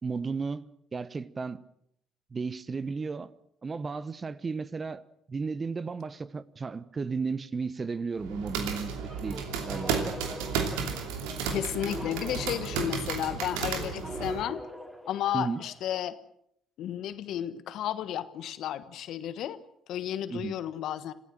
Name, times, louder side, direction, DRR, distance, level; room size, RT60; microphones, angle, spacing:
voice 1, 0.0-0.7 0.9-1.6 2.3-3.3 3.6-5.0 5.3-8.9 9.2-10.2 15.3-15.6 20.3-20.5, right 4 dB, 35° right, 1.2 m, -34 dB
sound 1, 8.2-14.4, right 5 dB, 80° right, 2.8 m, -33 dB
sound 2, 9.0-15.8, equal, 10° right, 3.9 m, -44 dB
voice 2, 11.5-14.6 15.1-16.2 16.8-19.6 19.9-21.1, left 11 dB, 65° left, 1.3 m, -33 dB
26.5 x 15.0 x 7.7 m
hypercardioid pair, 50°, 0 cm